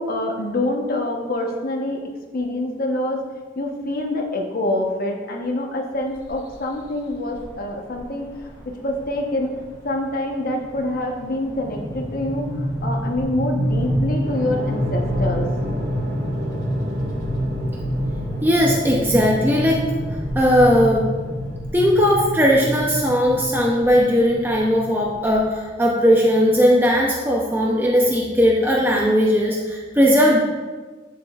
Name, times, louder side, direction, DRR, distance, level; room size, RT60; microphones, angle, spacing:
voice 1, 0.0-2.0 2.3-3.2 3.6-8.3 8.8-9.5 9.8-15.5, left 1 dB, 50° left, 1 dB, 1.0 m, -26 dB
sound 1, 6.3-6.5 7.4-7.5 7.9-8.0 8.3-8.6 9.0-25.4, equal, 20° left, 1.1 m, -27 dB
sound 2, 14.2-21.6, equal, 55° right, 1.4 m, -35 dB
voice 2, 18.4-19.8 20.4-21.1 21.7-30.4, equal, 10° right, -2 dB, 0.6 m, -18 dB
9.1 x 7.4 x 2.4 m, 1.4 s
head